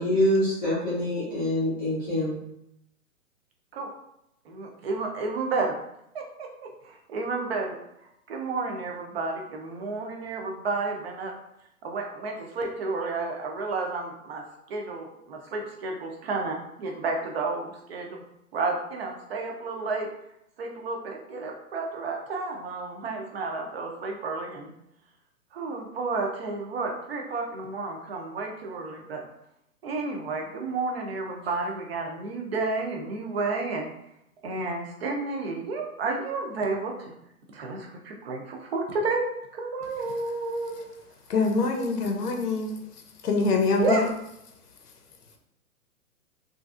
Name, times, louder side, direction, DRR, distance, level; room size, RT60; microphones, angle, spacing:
voice 1, 0.0-2.4, left 1 dB, 15° left, -10 dB, 0.5 m, -25 dB
voice 2, 4.5-5.8 6.1-7.8 8.3-11.3 11.8-14.4 14.7-18.2 18.5-20.1 20.6-24.7 25.5-29.2 29.8-33.9 34.4-37.1 37.5-39.2 39.5-40.9 43.8-44.1, right 3 dB, 45° right, 1 dB, 0.6 m, -31 dB
voice 3, 41.3-42.8 43.2-44.1, left 3 dB, 90° left, 3 dB, 0.8 m, -24 dB
3.1 x 2.5 x 2.4 m, 0.80 s
hypercardioid pair, 150°, 45 cm